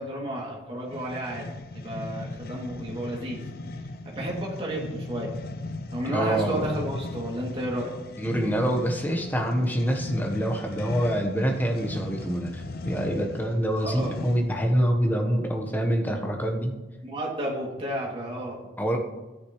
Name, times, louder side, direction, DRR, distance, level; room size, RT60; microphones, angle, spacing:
voice 1, 0.0-1.5 1.7-3.4 3.7-5.3 5.9-7.9 13.8-14.2 17.0-18.6, right 1 dB, 30° right, -3 dB, 2.7 m, -32 dB
sound 1, 0.9-14.6, left 2 dB, 55° left, 0.6 m, -37 dB
voice 2, 6.1-6.6 8.2-16.7 18.8-19.0, equal, 10° left, 2 dB, 1.2 m, -26 dB
13.0 x 10.0 x 3.2 m, 1.1 s
head